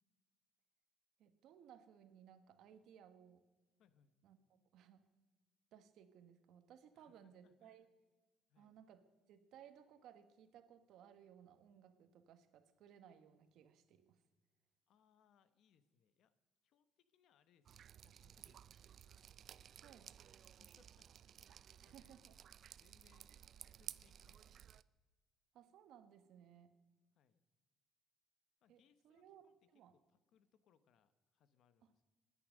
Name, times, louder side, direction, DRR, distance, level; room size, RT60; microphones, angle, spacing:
voice 1, 1.2-3.4 4.2-4.4 4.7-5.1 5.7-7.9 8.6-14.2 19.8-20.1 21.8-22.3 23.3-23.4 25.5-26.7 28.7-29.4 29.7-29.9, right 9 dB, 70° right, 10 dB, 1.4 m, -62 dB
voice 2, 3.8-4.1 6.9-7.8 8.5-8.8 14.9-16.3 16.6-18.8 20.5-21.1 21.4-22.2 22.8-23.3 23.6-24.5 27.1-27.4 28.6-29.5 29.9-32.0, left 8 dB, 65° left, 13 dB, 1.1 m, -75 dB
Drip, 17.7-24.8, right 9 dB, 50° right, 0.4 m, -56 dB
19.5 x 9.9 x 6.4 m, 1.3 s
cardioid pair, 130°, 0 cm